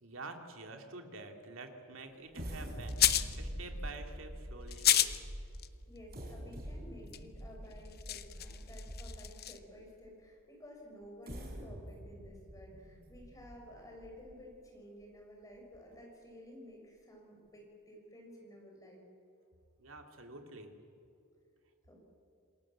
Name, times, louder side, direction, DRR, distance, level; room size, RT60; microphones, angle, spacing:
voice 1, 0.0-5.2 19.8-20.7, right 3 dB, 60° right, 4 dB, 2.7 m, -48 dB
sound 1, 2.3-9.4 10.0-10.1 11.0-14.5 15.0-15.1 15.5-15.8, equal, 45° right, 5.1 m, -45 dB
sound 2, 2.9-3.4 4.7-5.2 5.5-5.7 7.1-7.2 7.7-9.6, left 12 dB, 45° left, 0.9 m, -30 dB
voice 2, 5.9-19.1 21.8-22.1, equal, 15° left, 0 dB, 6.1 m, -53 dB
27.5 x 21.0 x 7.5 m, 2.6 s
head